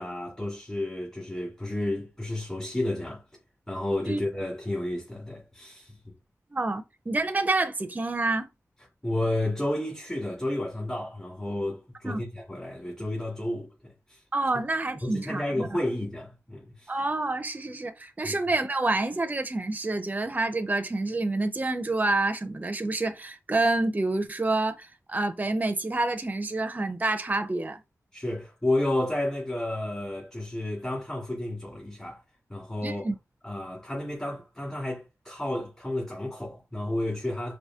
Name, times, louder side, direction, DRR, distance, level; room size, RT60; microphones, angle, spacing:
voice 1, 0.0-3.2 3.7-6.0 9.0-13.7 14.1-14.2 15.0-16.9 18.2-18.4 28.1-32.2 32.5-33.1 33.4-37.6, left 1 dB, 20° left, 2.3 m, -31 dB
voice 2, 6.5-8.5 12.0-12.2 14.3-15.7 16.9-27.8 32.8-33.1, right 2 dB, 30° right, 0.6 m, -28 dB
4.8 x 2.6 x 2.8 m
wide cardioid pair, 80°, 6 cm